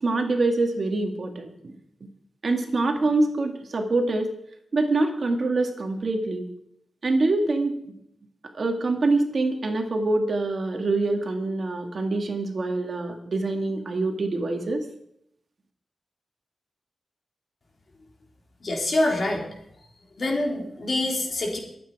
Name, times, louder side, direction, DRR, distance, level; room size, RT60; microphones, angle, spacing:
voice 1, 0.0-1.8 2.4-4.3 4.7-6.5 7.0-7.8 8.5-14.8, right 2 dB, 50° right, 4 dB, 2.0 m, -25 dB
voice 2, 18.6-19.4 20.2-21.6, left 2 dB, 50° left, 0 dB, 3.6 m, -25 dB
23.0 x 8.7 x 4.8 m, 0.75 s
wide cardioid pair, 125°, 0 cm